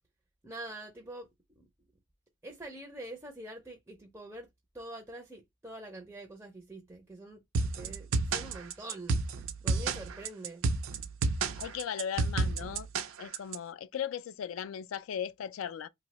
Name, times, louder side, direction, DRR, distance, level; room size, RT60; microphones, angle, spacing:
voice 1, 0.4-1.3 1.6-1.7 2.4-4.5 4.7-7.4 7.7-9.2 9.6-10.6, right 1 dB, 10° right, 0.4 m, -45 dB
sound 1, 7.5-13.6, right 3 dB, 80° right, 0.4 m, -30 dB
voice 2, 11.6-12.9 13.2-15.9, left 8 dB, 85° left, 0.3 m, -37 dB
2.7 x 2.0 x 3.9 m
head